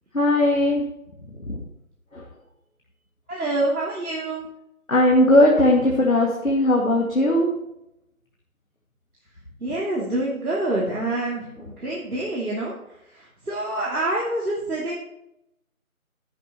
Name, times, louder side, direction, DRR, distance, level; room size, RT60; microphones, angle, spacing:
voice 1, 0.1-0.8 1.5-1.6 4.9-7.5, left 1 dB, 70° left, -2 dB, 2.3 m, -18 dB
voice 2, 3.3-4.5 9.6-12.7 13.2-14.9, right 2 dB, 90° right, -5 dB, 3.0 m, -26 dB
11.5 x 10.5 x 3.0 m, 0.84 s
figure-of-eight pair, 175°, 42 cm